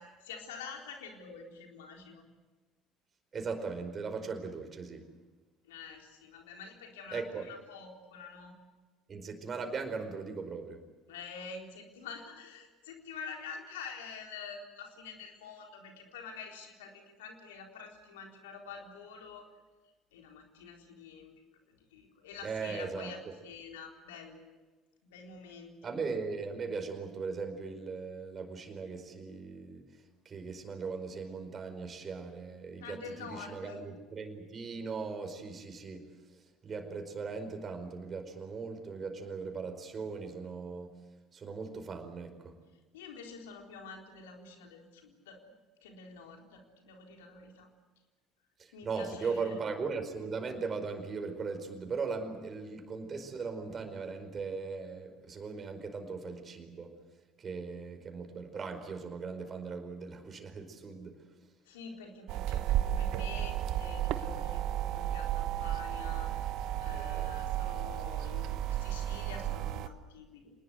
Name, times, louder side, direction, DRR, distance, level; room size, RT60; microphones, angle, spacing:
voice 1, 0.0-2.3 5.6-8.6 11.1-19.5 20.1-21.3 21.9-24.4 25.0-25.9 32.8-33.8 42.9-45.4 45.8-47.7 48.7-49.6 61.7-66.5 66.8-70.5, left 5 dB, 75° left, 2 dB, 4.0 m, -47 dB
voice 2, 3.3-5.1 7.1-7.5 9.1-10.8 22.4-23.3 25.8-29.8 30.2-36.1 36.6-41.0 41.3-42.5 48.6-56.9 57.4-61.2 66.9-67.4, right 4 dB, 35° right, 6 dB, 4.9 m, -39 dB
sound 1, 62.3-69.9, right 12 dB, 60° right, 1.2 m, -33 dB
27.0 x 20.5 x 8.1 m, 1.2 s
figure-of-eight pair, 60°, 0 cm